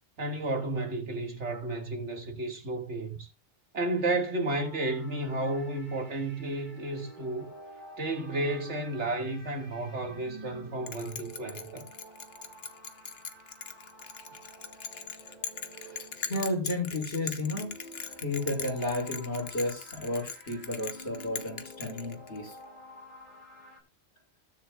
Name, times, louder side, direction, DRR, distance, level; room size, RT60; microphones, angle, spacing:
voice 1, 0.2-3.3 3.7-7.5 8.0-11.8, right 2 dB, 85° right, 2.5 m, -32 dB
sound 1, 4.5-23.8, right 1 dB, 45° right, 5.0 m, -50 dB
Bell, 10.9-22.5, left 6 dB, 65° left, 1.3 m, -40 dB
voice 2, 15.7-22.6, left 1 dB, 80° left, 5.0 m, -33 dB
20.0 x 7.0 x 2.4 m
omnidirectional pair, 1.1 m